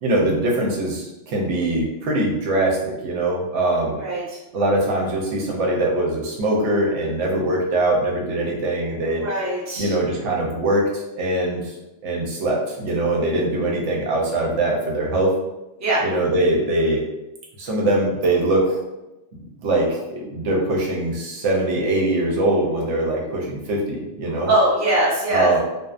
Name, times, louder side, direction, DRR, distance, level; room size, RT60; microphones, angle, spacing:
voice 1, 0.0-4.0 4.5-9.2 9.8-11.7 12.0-15.3 16.0-17.0 17.6-18.8 19.3-24.5 25.3-25.6, right 1 dB, 85° right, -2 dB, 1.0 m, -22 dB
voice 2, 9.2-9.9 15.8-16.0 24.3-25.5, right 1 dB, 20° right, -5 dB, 0.5 m, -21 dB
2.6 x 2.0 x 2.4 m, 0.98 s
omnidirectional pair, 1.2 m